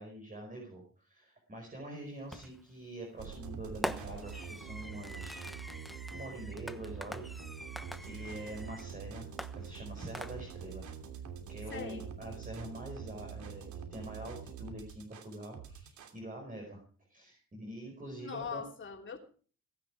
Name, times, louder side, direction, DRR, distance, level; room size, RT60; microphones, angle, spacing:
voice 1, 0.0-5.5 6.1-7.3 8.0-9.3 9.5-10.9 11.5-16.8 17.1-18.6, right 1 dB, 25° right, 1 dB, 5.2 m, -45 dB
Fireworks, 2.3-2.7 3.8-8.9 9.4-10.7, equal, ahead, 1.1 m, -43 dB
sound 1, 3.2-16.2, right 7 dB, 75° right, 3.0 m, -45 dB
voice 2, 11.7-12.1 18.2-19.2, left 6 dB, 40° left, 3 dB, 3.2 m, -41 dB
17.5 x 10.5 x 4.9 m, 0.41 s
cardioid pair, 90°, 30 cm